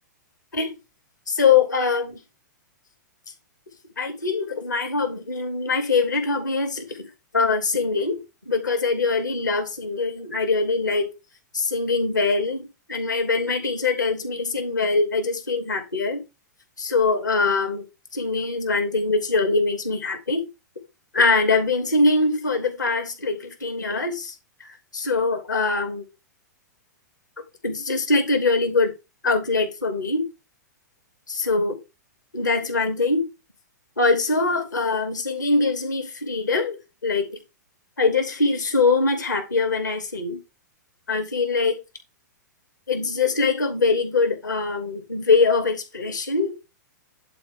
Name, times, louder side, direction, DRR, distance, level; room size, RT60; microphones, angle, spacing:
voice 1, 1.3-2.2 4.0-7.1 7.3-11.1 11.5-16.2 16.8-17.8 18.1-20.5 21.1-24.3 24.6-26.0 27.6-28.9 29.2-30.3 31.3-31.8 32.3-33.3 34.0-36.8 37.0-37.3 38.0-40.4 41.1-41.8 42.9-46.5, left 3 dB, 85° left, 2.9 m, -23 dB
11.0 x 4.1 x 3.8 m
figure-of-eight pair, 110°, 10 cm